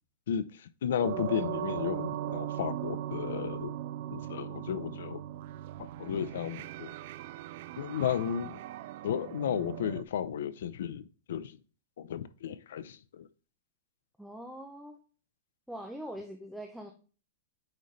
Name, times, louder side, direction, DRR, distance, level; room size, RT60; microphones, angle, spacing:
voice 1, 0.8-3.7 4.1-5.2 6.0-6.9 7.8-8.6 9.0-11.5 12.0-13.3, left 9 dB, 75° left, 0.6 m, -33 dB
sound 1, 1.0-10.0, right 13 dB, 45° right, 0.3 m, -39 dB
voice 2, 14.2-15.0 15.7-16.9, equal, ahead, 0.6 m, -42 dB
8.9 x 4.1 x 3.2 m
supercardioid pair, 175°, 0 cm